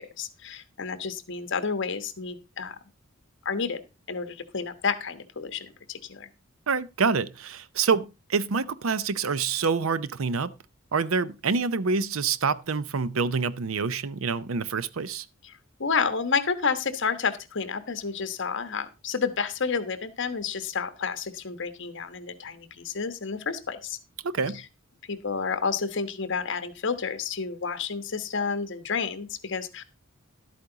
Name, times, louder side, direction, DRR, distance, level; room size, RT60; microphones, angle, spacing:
voice 1, 0.0-2.8 3.4-3.8 4.1-6.3 15.4-24.0 24.5-24.7 25.1-29.8, left 5 dB, 65° left, 1.2 m, -30 dB
voice 2, 6.7-10.5 10.9-15.3 24.2-24.6, right 5 dB, 90° right, 0.6 m, -27 dB
12.0 x 8.5 x 3.9 m
head